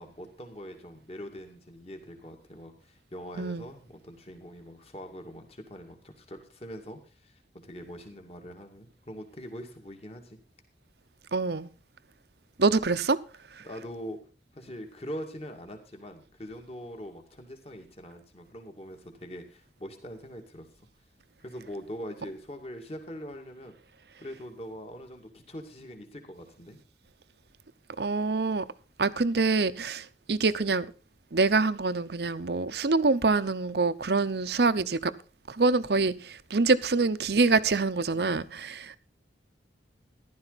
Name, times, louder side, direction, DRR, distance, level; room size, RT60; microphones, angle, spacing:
voice 1, 0.0-10.4 13.6-14.2 14.5-20.7 21.4-23.7 24.2-26.8 38.1-38.6, equal, 35° left, 2.3 m, -43 dB
voice 2, 11.3-11.7 12.6-13.2 28.0-28.6 29.0-30.9 31.3-35.1 35.5-39.0, right 3 dB, 60° right, 0.8 m, -25 dB
14.5 x 12.0 x 4.1 m
head